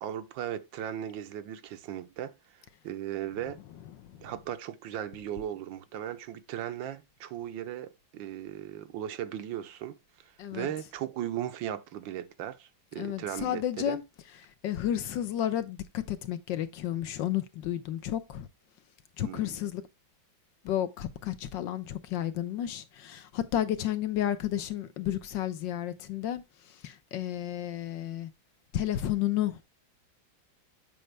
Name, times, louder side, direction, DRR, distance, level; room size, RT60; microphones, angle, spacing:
voice 1, 0.0-3.6 4.2-14.0 19.2-19.5, right 11 dB, 75° right, 1.4 m, -37 dB
voice 2, 13.0-14.0 14.6-18.5 19.2-19.8 20.6-28.3 28.7-29.6, left 11 dB, 75° left, 1.4 m, -32 dB
7.9 x 5.3 x 3.3 m
omnidirectional pair, 2.1 m